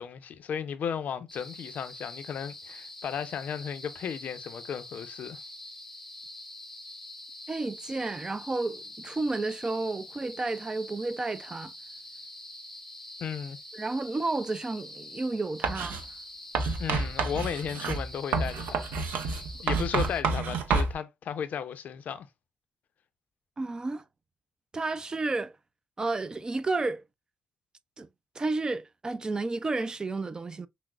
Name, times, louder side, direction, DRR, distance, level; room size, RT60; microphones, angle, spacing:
voice 1, 0.0-5.4 13.2-13.6 16.8-18.8 19.2-22.3, left 8 dB, 65° left, 0.5 m, -35 dB
sound 1, 1.3-20.2, left 1 dB, 10° left, 0.7 m, -45 dB
voice 2, 7.5-11.7 13.7-16.0 23.6-24.0 24.7-25.5 26.0-27.0 28.0-28.1 28.4-30.7, right 3 dB, 25° right, 0.3 m, -31 dB
Writing, 15.6-16.0 16.5-20.9, right 4 dB, 80° right, 0.7 m, -29 dB
5.9 x 2.0 x 2.3 m
cardioid pair, 90°, 3 cm